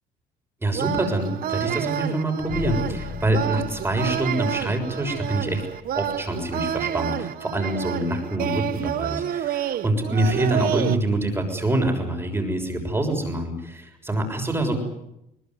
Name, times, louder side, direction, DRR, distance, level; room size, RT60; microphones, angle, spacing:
voice 1, 0.6-5.7 5.9-14.7, right 1 dB, 15° right, 4 dB, 6.6 m, -25 dB
sound 1, 0.7-11.0, right 10 dB, 60° right, 1.2 m, -29 dB
sound 2, 2.5-6.7, left 6 dB, 60° left, 3.7 m, -38 dB
22.5 x 20.0 x 9.6 m, 0.85 s
cardioid pair, 110°, 17 cm